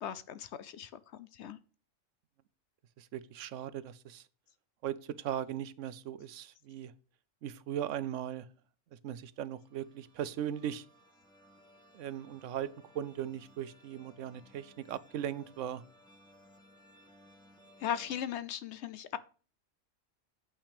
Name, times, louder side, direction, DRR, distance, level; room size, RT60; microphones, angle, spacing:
voice 1, 0.0-1.6 17.8-19.2, left 9 dB, 65° left, 0.8 m, -38 dB
voice 2, 3.0-4.2 4.8-6.9 7.4-8.5 9.0-10.8 11.9-12.7 12.9-15.8, right 10 dB, 75° right, 0.9 m, -38 dB
sound 1, 9.4-18.2, equal, 5° left, 1.9 m, -61 dB
8.3 x 5.8 x 5.1 m
omnidirectional pair, 1.3 m